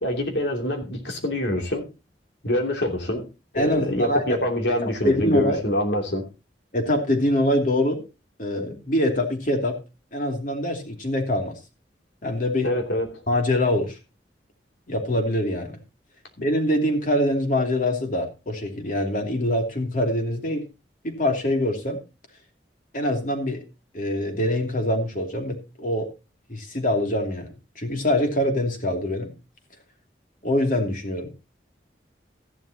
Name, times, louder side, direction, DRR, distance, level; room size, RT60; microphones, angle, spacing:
voice 1, 0.0-1.9 2.4-3.2 3.5-6.3 12.6-13.2, left 1 dB, 80° left, 2 dB, 3.0 m, -25 dB
voice 2, 3.5-4.4 4.8-5.6 6.7-8.0 8.4-9.8 10.1-11.5 12.2-12.7 13.3-14.0 14.9-15.7 16.4-20.6 21.0-22.0 22.9-23.6 23.9-26.1 26.5-29.3 30.4-31.3, left 1 dB, 50° left, 3 dB, 2.8 m, -24 dB
14.5 x 11.5 x 2.9 m, 0.29 s
head